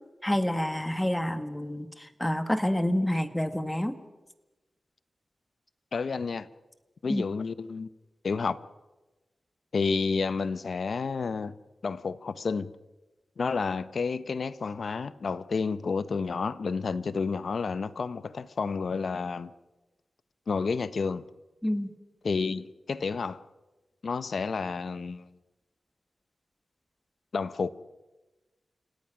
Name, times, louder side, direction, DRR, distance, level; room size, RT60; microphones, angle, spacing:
voice 1, 0.2-4.0 7.1-7.2 21.6-21.9, left 1 dB, 10° left, 1.8 m, -28 dB
voice 2, 5.9-6.5 7.0-7.9 8.2-8.6 9.7-11.5 11.8-12.7 13.4-19.5 20.5-21.2 22.2-23.4 24.0-25.3 27.3-27.7, left 4 dB, 70° left, 0.8 m, -30 dB
29.5 x 17.5 x 6.1 m
wide cardioid pair, 70°, 0 cm